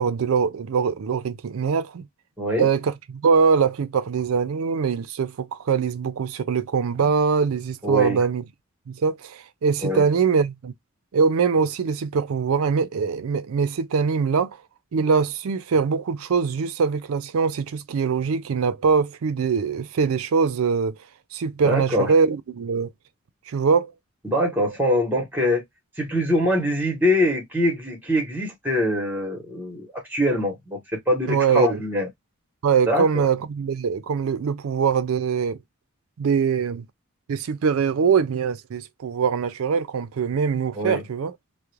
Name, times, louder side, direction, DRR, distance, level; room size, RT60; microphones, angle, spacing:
voice 1, 0.0-2.1 2.6-8.4 8.9-10.7 11.1-14.6 14.9-21.0 21.3-22.9 23.5-23.9 31.3-31.8 32.6-35.6 36.2-36.9 37.3-41.3, right 5 dB, 75° right, 0.4 m, -22 dB
voice 2, 2.4-2.7 7.8-8.2 9.8-10.0 21.6-22.1 24.2-25.6 26.0-32.1 32.9-33.2 40.8-41.0, left 1 dB, 10° right, 0.9 m, -23 dB
2.4 x 2.0 x 2.9 m
head